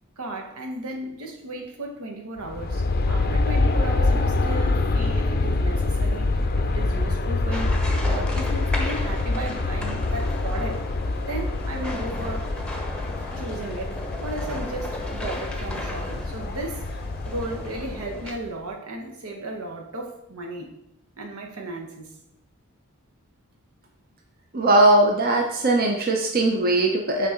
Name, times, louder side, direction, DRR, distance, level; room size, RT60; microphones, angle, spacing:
voice 1, 0.2-7.8 8.0-10.9 11.2-12.5 13.4-16.8 17.3-20.7 21.2-22.2, right 2 dB, 75° right, 2 dB, 1.0 m, -35 dB
Aircraft, 2.4-18.5, left 2 dB, 45° left, 0.5 m, -25 dB
sound 1, 7.5-18.3, left 1 dB, 5° left, 0.8 m, -36 dB
voice 2, 24.5-27.3, right 2 dB, 45° right, 1 dB, 0.7 m, -19 dB
6.0 x 3.8 x 4.4 m, 0.79 s
head